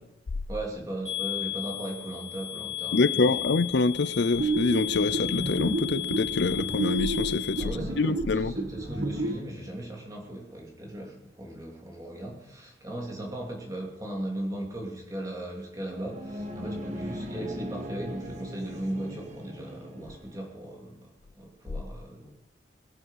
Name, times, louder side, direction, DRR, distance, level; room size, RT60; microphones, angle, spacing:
voice 1, 0.5-3.3 7.6-8.2 8.4-22.3, right 1 dB, 20° right, 3.0 m, -37 dB
sound 1, 1.0-7.6, left 15 dB, 25° left, 3.0 m, -34 dB
voice 2, 2.9-8.5, left 3 dB, 70° left, 0.5 m, -26 dB
sound 2, 4.4-9.4, right 2 dB, 70° right, 1.5 m, -31 dB
sound 3, 15.7-20.4, equal, 40° right, 1.5 m, -39 dB
22.5 x 8.1 x 5.8 m
head